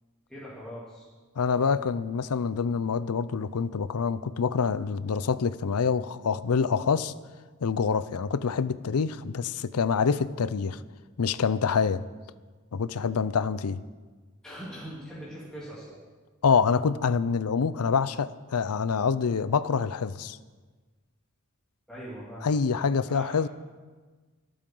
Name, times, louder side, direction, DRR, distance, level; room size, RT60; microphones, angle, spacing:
voice 1, 0.3-1.0 14.4-16.0 21.9-23.3, equal, 5° left, 3.0 m, -42 dB
voice 2, 1.4-7.1 7.6-10.8 11.2-12.0 12.7-13.8 16.4-20.4 22.4-23.5, left 5 dB, 90° left, 0.5 m, -26 dB
25.0 x 8.8 x 3.9 m
head